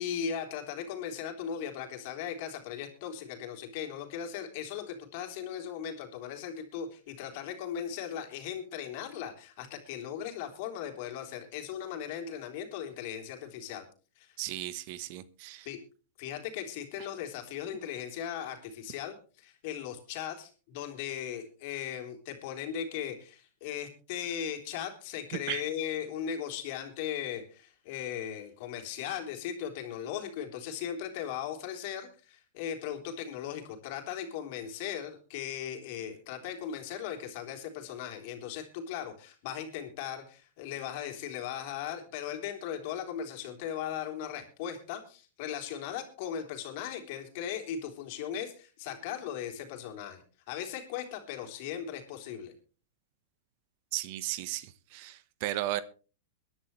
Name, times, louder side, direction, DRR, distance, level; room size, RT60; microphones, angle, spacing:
voice 1, 0.0-13.9 14.2-14.4 15.6-15.8 16.2-52.5, left 9 dB, 55° left, 3 dB, 3.8 m, -38 dB
voice 2, 14.4-15.7 25.5-25.6 53.9-55.8, right 15 dB, 50° right, 15 dB, 1.1 m, -35 dB
22.5 x 11.0 x 3.2 m, 0.36 s
hypercardioid pair, 115°, 0 cm